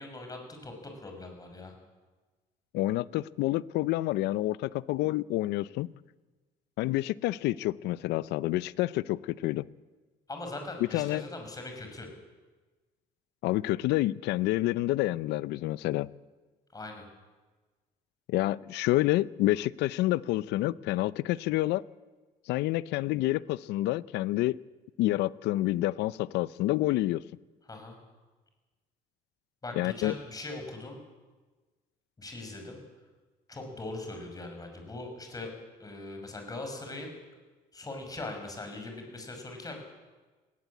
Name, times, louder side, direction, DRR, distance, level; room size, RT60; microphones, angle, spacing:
voice 1, 0.0-1.7 10.3-12.1 16.7-17.0 27.7-28.0 29.6-31.0 32.2-32.8 33.5-35.5 35.8-37.1 37.7-39.7, left 2 dB, 20° left, 5.8 m, -40 dB
voice 2, 2.7-5.9 6.8-9.7 10.9-11.2 13.4-16.1 18.3-21.8 22.5-24.6 25.0-27.2 29.8-30.2, left 16 dB, 85° left, 0.6 m, -28 dB
20.0 x 17.0 x 8.4 m
cardioid pair, 110°, 17 cm